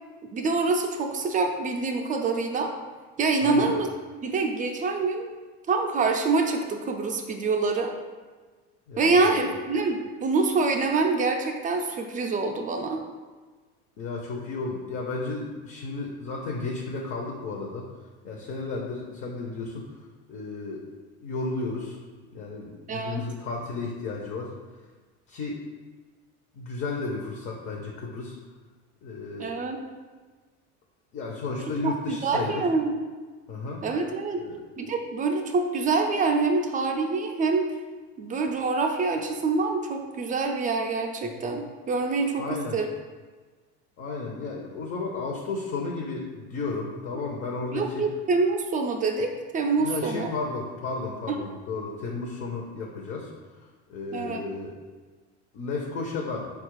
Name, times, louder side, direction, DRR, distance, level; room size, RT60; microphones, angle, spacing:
voice 1, 0.3-2.7 3.2-3.9 4.2-5.3 5.7-7.9 9.0-13.0 22.9-23.2 29.4-29.8 31.8-33.0 33.8-34.4 34.8-37.7 38.2-42.9 47.7-50.3 51.3-51.4 54.1-54.4, right 3 dB, 25° right, 3 dB, 0.4 m, -26 dB
voice 2, 3.4-3.7 8.9-9.4 14.0-17.9 18.2-19.9 20.3-20.8 21.2-22.0 22.3-24.5 25.3-25.6 26.6-28.4 29.0-29.5 31.1-32.6 33.5-33.8 34.4-34.6 42.4-42.8 44.0-48.1 49.8-53.3 53.9-54.7 55.5-56.5, left 3 dB, 45° left, 0 dB, 0.6 m, -33 dB
4.3 x 2.4 x 4.6 m, 1.4 s
cardioid pair, 130°, 32 cm